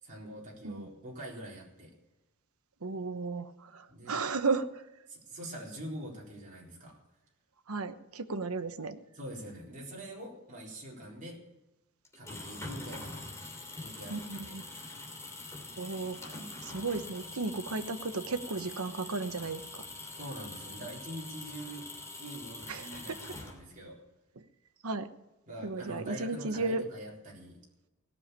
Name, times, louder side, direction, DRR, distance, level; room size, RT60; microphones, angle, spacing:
voice 1, 0.0-1.9 3.9-4.1 5.1-7.0 9.1-11.4 12.1-13.2 13.8-14.6 20.1-21.9 22.2-24.0 25.5-27.6, right 1 dB, 40° right, -4 dB, 4.2 m, -44 dB
voice 2, 2.8-4.9 7.7-9.0 14.1-14.6 15.8-19.8 22.7-23.2 24.4-24.5 24.8-25.1 25.6-26.9, right 3 dB, 85° right, 10 dB, 1.1 m, -35 dB
sound 1, 12.0-23.9, left 2 dB, 15° left, 3.1 m, -44 dB
17.5 x 7.1 x 8.3 m, 1.0 s
head